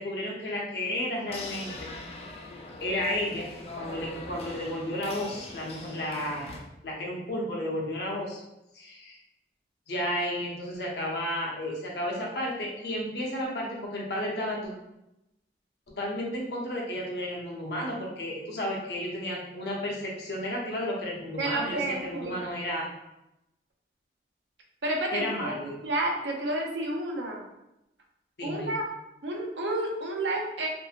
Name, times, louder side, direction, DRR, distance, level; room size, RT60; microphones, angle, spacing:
voice 1, 0.0-1.9 2.8-3.5 3.8-6.5 6.8-8.4 8.7-9.2 9.9-14.7 16.0-22.9 25.1-25.7 28.4-28.7, left 1 dB, 65° left, -3 dB, 0.7 m, -32 dB
sound 1, 1.3-6.6, left 2 dB, 35° left, 0.3 m, -42 dB
voice 2, 21.4-22.4 24.8-25.6 25.8-27.4 28.4-28.8 29.2-30.7, right 1 dB, 85° right, 1 dB, 0.6 m, -30 dB
2.8 x 2.6 x 2.4 m, 0.90 s
head